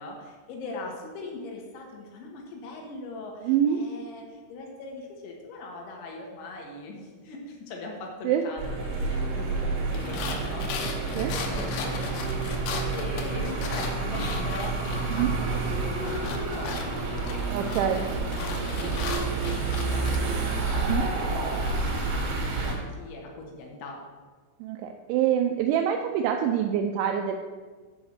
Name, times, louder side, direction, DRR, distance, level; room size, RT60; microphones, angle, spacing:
voice 1, 0.0-10.7 12.9-17.5 17.9-24.0, left 2 dB, 70° left, 0 dB, 3.6 m, -41 dB
voice 2, 3.5-3.8 8.2-8.4 11.1-11.4 15.1-15.3 17.5-18.1 20.8-21.1 24.6-27.4, right 9 dB, 85° right, 4 dB, 2.7 m, -25 dB
sound 1, 8.6-22.7, right 3 dB, 60° right, 3.4 m, -29 dB
sound 2, 9.9-15.2 15.5-20.2, left 5 dB, 85° left, 3.8 m, -36 dB
sound 3, 11.3-19.3, right 2 dB, 35° right, 3.8 m, -51 dB
7.9 x 5.7 x 7.1 m, 1.4 s
omnidirectional pair, 5.8 m